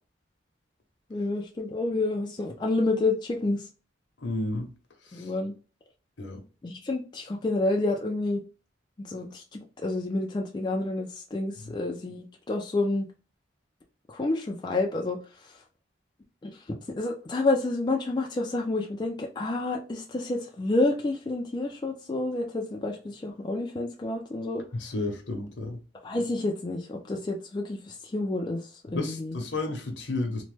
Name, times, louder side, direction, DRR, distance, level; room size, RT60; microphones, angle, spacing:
voice 1, 1.1-3.7 5.1-5.5 6.6-8.4 9.0-13.1 14.1-15.2 16.4-16.6 17.0-24.6 26.0-29.4, left 2 dB, 25° left, 0.3 m, -29 dB
voice 2, 4.2-4.7 5.1-5.3 6.2-6.4 11.6-11.7 24.8-25.8 28.9-30.4, left 2 dB, 70° left, 0.8 m, -32 dB
3.0 x 2.1 x 3.2 m
head